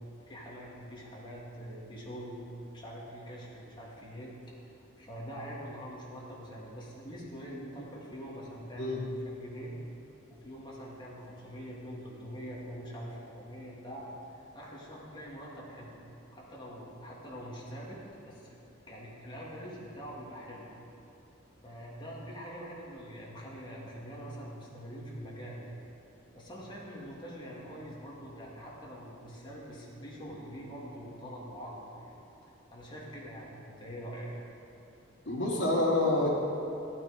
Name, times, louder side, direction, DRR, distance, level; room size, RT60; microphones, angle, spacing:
voice 1, 0.3-2.4 2.7-4.3 4.7-9.7 10.3-14.0 14.4-16.0 16.3-18.6 18.9-20.7 21.6-25.7 26.3-32.2 32.7-34.3, equal, 25° left, -5 dB, 2.6 m, -44 dB
voice 2, 35.3-36.3, left 2 dB, 60° left, -5 dB, 2.9 m, -27 dB
15.0 x 8.6 x 5.3 m, 2.9 s
head